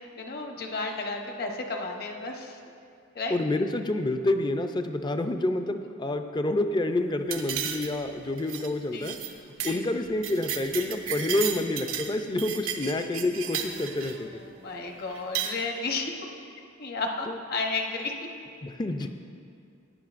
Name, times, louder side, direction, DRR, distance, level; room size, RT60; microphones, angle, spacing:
voice 1, 0.0-2.6 3.1-3.4 8.9-9.1 9.6-9.8 14.1-16.1 16.8-18.1, left 3 dB, 50° left, 2 dB, 0.9 m, -33 dB
voice 2, 3.3-9.2 9.6-14.4 17.3-17.4 18.6-19.1, left 2 dB, 20° left, 7 dB, 0.4 m, -28 dB
sound 1, 7.3-8.1 8.4-8.7 9.0-9.3 9.6-9.8 10.0-12.1 12.4-14.2 15.1-15.5, right 8 dB, 90° right, 0.8 m, -33 dB
16.0 x 9.6 x 2.5 m, 2.4 s
head